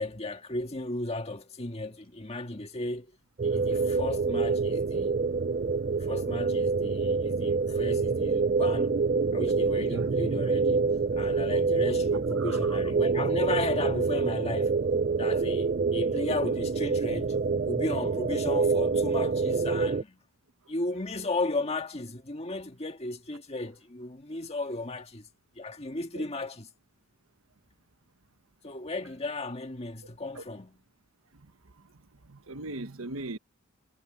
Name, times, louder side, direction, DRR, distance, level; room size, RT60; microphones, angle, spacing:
voice 1, 0.0-3.1 3.4-5.1 6.0-9.0 9.3-14.7 15.2-17.4 17.7-20.2 20.7-25.3 25.6-26.7 28.6-30.8, left 2 dB, 30° left, 1.8 m, -35 dB
sound 1, 3.4-20.0, right 4 dB, 40° right, 0.5 m, -26 dB
voice 2, 12.4-12.8 26.1-26.3 30.3-30.4 31.3-31.5 31.8-31.9 32.3-33.4, right 2 dB, 90° right, 1.3 m, -39 dB
head